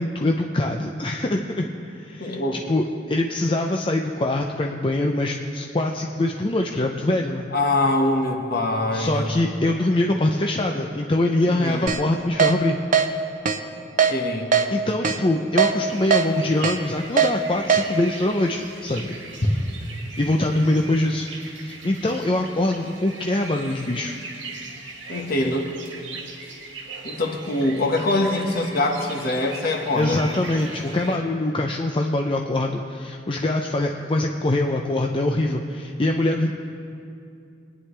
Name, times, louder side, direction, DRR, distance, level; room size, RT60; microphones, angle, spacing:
voice 1, 0.0-2.4 2.7-7.5 8.9-12.8 14.7-19.1 20.2-24.2 29.9-36.5, left 1 dB, 30° left, 2 dB, 0.5 m, -23 dB
voice 2, 2.2-2.6 7.5-9.3 11.5-11.9 14.1-14.6 25.1-25.7 27.0-30.2, left 2 dB, 50° left, 1 dB, 1.5 m, -24 dB
Keyboard (musical), 11.9-12.0 12.4-12.5 12.9-13.1 13.5-13.6 14.0-14.1 14.5-14.7 15.0-15.2 15.6-15.7 16.1-16.2 16.6-16.8 17.2-17.3 17.7-17.8, right 6 dB, 45° right, 0.7 m, -18 dB
sound 1, 15.8-31.2, right 3 dB, 80° right, 1.8 m, -40 dB
23.5 x 10.0 x 3.3 m, 2.5 s
head